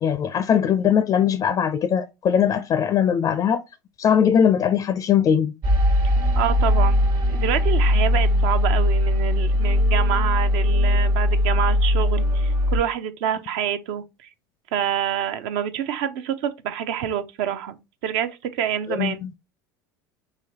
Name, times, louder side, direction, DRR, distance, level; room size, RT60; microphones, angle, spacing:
voice 1, 0.0-3.6 4.0-5.5 18.9-19.3, left 8 dB, 35° left, 0.4 m, -20 dB
sound 1, 5.6-12.8, left 1 dB, 45° right, 1.0 m, -20 dB
voice 2, 6.4-14.3 14.7-19.2, right 9 dB, 60° right, 0.6 m, -27 dB
4.9 x 3.2 x 2.8 m
hypercardioid pair, 80°, 10 cm